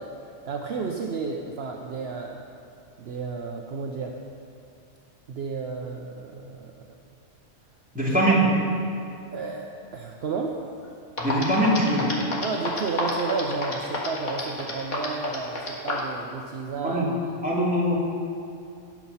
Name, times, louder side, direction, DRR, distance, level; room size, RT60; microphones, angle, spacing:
voice 1, 0.0-2.4 3.0-4.2 5.3-6.7 9.3-10.6 12.4-17.1, right 4 dB, 60° right, 2 dB, 0.9 m, -32 dB
voice 2, 7.9-8.4 11.2-12.1 16.8-17.1 17.4-18.0, right 1 dB, 5° right, -6 dB, 2.5 m, -22 dB
sound 1, 10.8-10.9 11.2-16.1, left 3 dB, 75° left, 2.0 m, -29 dB
17.5 x 6.0 x 5.6 m, 2.6 s
omnidirectional pair, 1.3 m